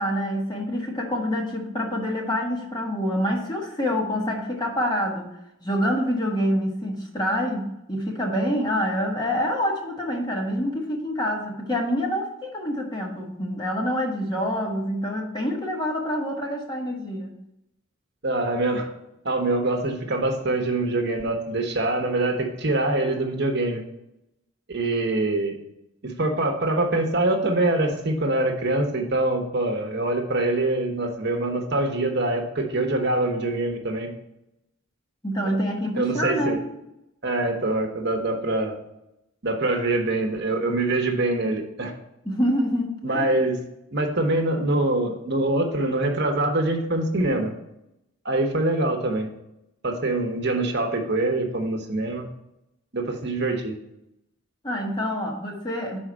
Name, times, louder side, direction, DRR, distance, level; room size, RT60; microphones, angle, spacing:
voice 1, 0.0-17.4 35.2-36.7 42.2-43.3 54.6-56.0, equal, 20° left, 0 dB, 1.1 m, -26 dB
voice 2, 18.2-18.9 19.2-23.8 24.7-25.6 26.0-34.1 36.0-36.6 37.2-38.7 39.4-41.9 43.0-43.6 43.9-47.5 48.2-49.3 49.8-52.2 52.9-53.7, right 2 dB, 50° right, 3 dB, 1.0 m, -24 dB
5.6 x 4.4 x 6.1 m, 0.86 s
head